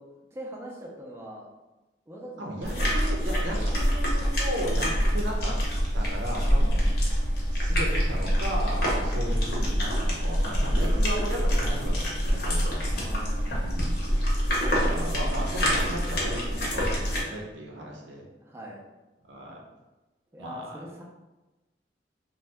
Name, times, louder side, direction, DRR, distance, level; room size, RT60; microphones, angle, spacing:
voice 1, 0.0-1.5 2.1-2.9 6.7-6.9 9.0-9.2 12.9-13.9 14.6-15.0 18.4-18.8 20.3-21.0, equal, 15° right, -2 dB, 0.4 m, -43 dB
voice 2, 2.4-5.5 5.9-6.9 7.5-12.8 13.5-14.1 14.7-18.3 19.3-19.6 20.4-20.8, equal, 85° right, 0 dB, 0.6 m, -35 dB
sound 1, 2.6-17.2, equal, 60° left, 0.8 m, -26 dB
2.7 x 2.1 x 3.3 m, 1.1 s
head